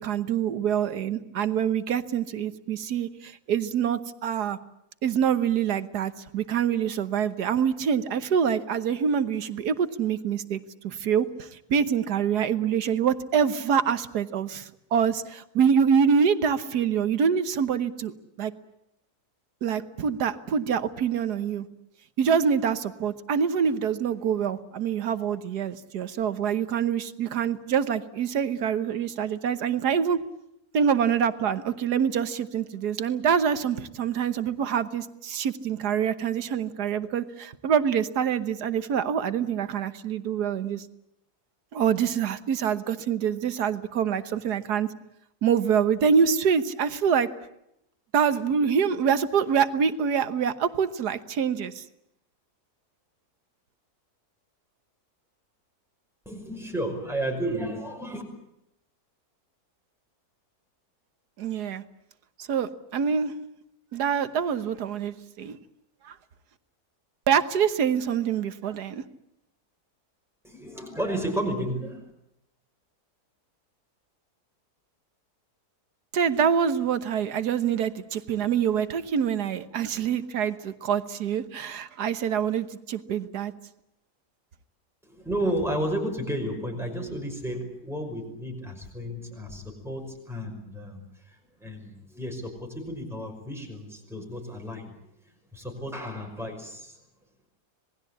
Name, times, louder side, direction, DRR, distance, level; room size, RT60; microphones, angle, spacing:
voice 1, 0.0-4.6 5.0-18.5 19.6-21.7 22.2-30.2 30.7-40.9 41.7-44.9 45.4-47.3 48.1-51.8 61.4-61.8 62.4-63.3 63.9-65.6 66.0-66.2 67.3-69.0 76.1-83.5, right 7 dB, 85° right, 12 dB, 1.7 m, -25 dB
voice 2, 56.3-58.2 70.4-72.1 85.0-94.9 95.5-97.0, right 1 dB, ahead, 2 dB, 5.5 m, -32 dB
27.0 x 19.5 x 8.5 m, 0.82 s
omnidirectional pair, 1.7 m